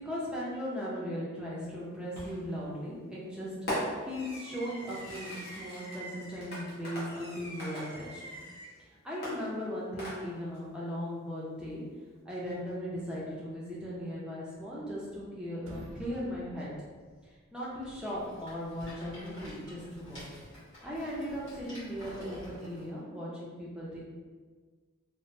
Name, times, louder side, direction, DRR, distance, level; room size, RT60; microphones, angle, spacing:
voice 1, 0.0-8.4 9.0-11.8 12.3-16.7 17.5-20.2 20.8-24.0, equal, 5° right, -7 dB, 0.5 m, -38 dB
Fireworks, 2.1-2.6 3.7-8.7 9.2-10.6, equal, 45° left, 0.9 m, -40 dB
sound 1, 14.8-15.3 15.6-17.7, right 1 dB, 75° right, 0.4 m, -49 dB
Rattle, 17.8-22.9, equal, 70° left, 1.5 m, -50 dB
3.2 x 2.1 x 2.6 m, 1.5 s
head